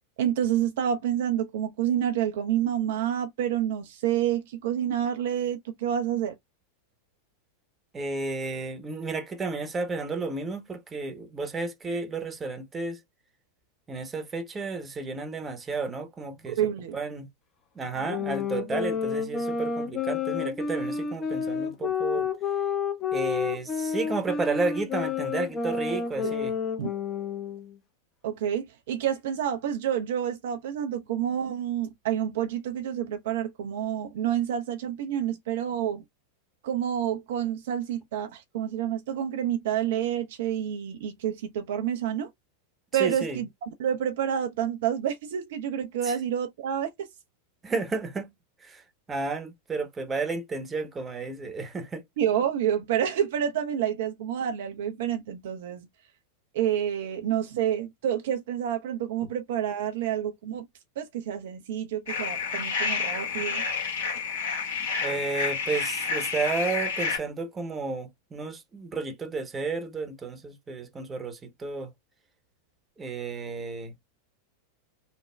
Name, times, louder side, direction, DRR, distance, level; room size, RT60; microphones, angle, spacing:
voice 1, 0.2-6.4 16.5-17.0 26.2-26.3 26.8-26.9 28.2-36.0 36.6-42.3 42.9-43.5 43.8-47.1 52.2-55.9 56.5-60.7 61.0-63.6, right 10 dB, 55° right, 0.4 m, -28 dB
voice 2, 7.9-13.0 13.9-16.6 16.9-17.3 17.7-22.3 23.1-26.5 43.0-43.4 46.0-46.2 47.6-48.3 48.6-48.8 49.1-52.0 65.0-71.9 73.0-74.0, right 3 dB, 15° right, 0.8 m, -32 dB
sound 1, 18.1-27.7, left 6 dB, 25° left, 0.6 m, -30 dB
sound 2, 62.1-67.2, left 5 dB, 60° left, 1.2 m, -29 dB
3.2 x 2.1 x 2.2 m
figure-of-eight pair, 90°, 0 cm